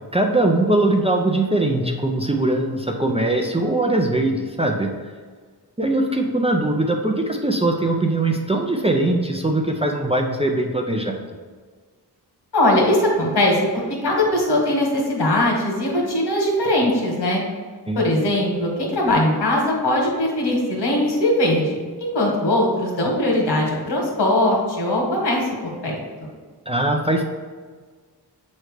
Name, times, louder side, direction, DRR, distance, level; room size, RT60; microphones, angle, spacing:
voice 1, 0.1-4.9 5.8-11.2 17.9-18.1 26.7-27.2, right 2 dB, 15° right, 1 dB, 0.4 m, -21 dB
voice 2, 12.5-17.4 17.9-25.5 25.8-26.0, left 1 dB, 80° left, -1 dB, 1.7 m, -20 dB
7.6 x 3.2 x 4.9 m, 1.5 s
wide cardioid pair, 175°, 40 cm